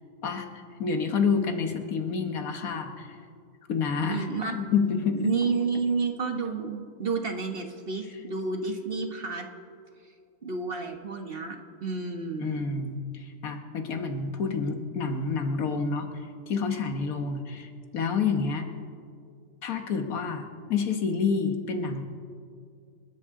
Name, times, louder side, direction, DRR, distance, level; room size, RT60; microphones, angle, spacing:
voice 1, 0.2-3.1 3.7-4.3 4.5-5.3 12.4-16.1 16.5-18.7 19.6-20.4 20.7-22.0, left 5 dB, 80° left, 6 dB, 1.6 m, -28 dB
voice 2, 4.1-4.5 5.1-9.5 10.4-12.6, right 4 dB, 45° right, 4 dB, 1.2 m, -30 dB
27.5 x 13.0 x 3.7 m, 2.3 s
omnidirectional pair, 1.5 m